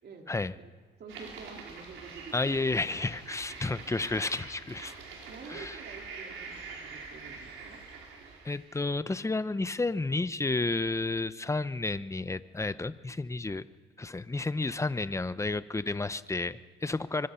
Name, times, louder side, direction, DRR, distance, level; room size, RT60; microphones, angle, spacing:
voice 1, 1.0-2.6 5.3-7.8 16.9-17.0, right 5 dB, 55° right, 2 dB, 3.1 m, -48 dB
sound 1, 1.1-8.8, right 4 dB, 90° right, 4.9 m, -45 dB
voice 2, 2.3-4.9 5.5-5.8 8.4-13.6 14.0-17.3, left 3 dB, 15° left, 14 dB, 0.8 m, -31 dB
24.5 x 23.5 x 5.8 m, 1.4 s
cardioid pair, 90°, 20 cm